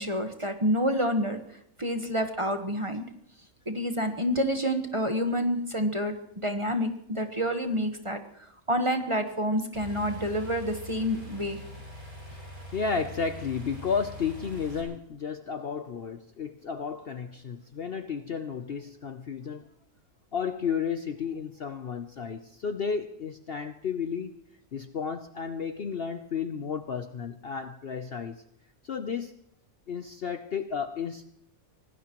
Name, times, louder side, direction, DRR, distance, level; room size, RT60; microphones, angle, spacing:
voice 1, 0.0-1.4 1.8-3.0 3.7-8.2 8.7-11.6, equal, 25° right, 6 dB, 1.2 m, -28 dB
sound 1, 9.7-14.8, left 1 dB, 70° right, 6.1 m, -43 dB
voice 2, 12.7-19.7 20.3-24.3 24.7-28.4 28.8-29.4 29.9-31.3, left 6 dB, 50° left, 9 dB, 0.8 m, -33 dB
25.0 x 18.5 x 3.0 m, 0.75 s
omnidirectional pair, 1.5 m